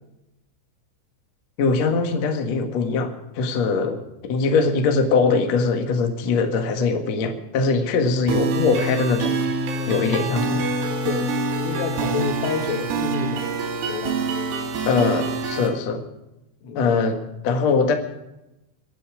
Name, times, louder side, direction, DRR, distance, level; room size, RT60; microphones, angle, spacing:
voice 1, 1.6-4.0 4.2-9.3 9.9-10.6 14.8-16.0 16.7-17.2 17.4-17.9, left 4 dB, 60° left, 5 dB, 1.8 m, -21 dB
sound 1, 8.3-15.7, right 3 dB, 70° right, 4.9 m, -26 dB
voice 2, 11.0-11.3 11.6-13.5 13.9-14.2 16.6-16.8, left 5 dB, 80° left, 5 dB, 4.5 m, -29 dB
23.5 x 9.9 x 4.9 m, 0.92 s
omnidirectional pair, 5.8 m